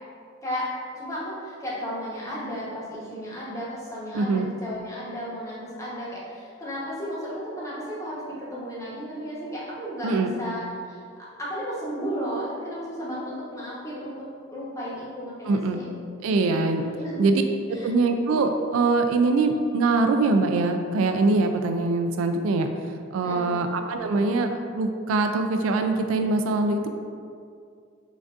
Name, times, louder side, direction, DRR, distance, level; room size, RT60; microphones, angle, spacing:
voice 1, 0.9-11.0 11.4-14.1 14.5-15.8 16.9-17.2 17.7-17.9 18.2-18.4 23.2-23.7, equal, 15° left, -7 dB, 0.9 m, -34 dB
voice 2, 4.1-4.5 10.0-10.3 15.5-15.8 16.2-16.8 17.2-17.4 17.7-22.7 23.1-26.9, right 3 dB, 90° right, 6 dB, 0.3 m, -23 dB
5.8 x 2.6 x 2.4 m, 2.3 s
head